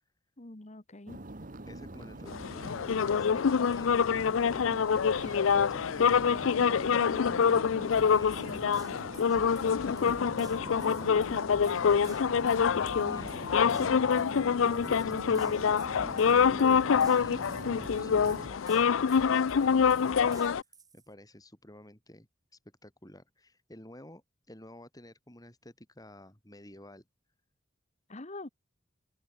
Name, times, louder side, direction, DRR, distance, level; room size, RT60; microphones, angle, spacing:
voice 1, 0.4-1.2 13.1-13.3 13.7-13.9 28.1-28.5, left 2 dB, 35° left, 1.4 m, -45 dB
sound 1, 1.1-18.5, right 2 dB, 45° right, 1.6 m, -44 dB
voice 2, 1.7-7.4 7.7-8.7 9.3-12.2 13.1-13.7 14.4-18.9 19.2-20.4 20.9-27.0, left 1 dB, 20° left, 6.0 m, -52 dB
sound 2, 2.3-20.6, left 6 dB, 90° left, 0.5 m, -26 dB
sound 3, 7.9-21.1, right 2 dB, 20° right, 7.9 m, -52 dB
open air
head